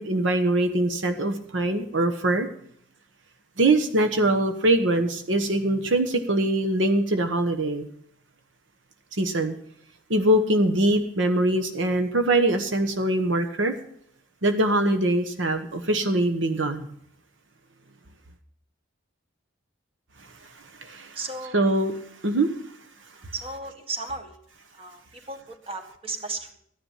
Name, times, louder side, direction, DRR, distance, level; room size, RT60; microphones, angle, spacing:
voice 1, 0.0-2.5 3.6-7.9 9.1-9.5 10.1-13.7 14.4-16.9 20.8-21.2 21.5-21.9 22.2-22.5, right 1 dB, 75° right, 7 dB, 1.2 m, -23 dB
voice 2, 21.2-21.6 23.3-24.4 24.7-26.6, right 3 dB, 30° right, 6 dB, 1.7 m, -35 dB
14.0 x 10.5 x 5.6 m, 0.67 s
head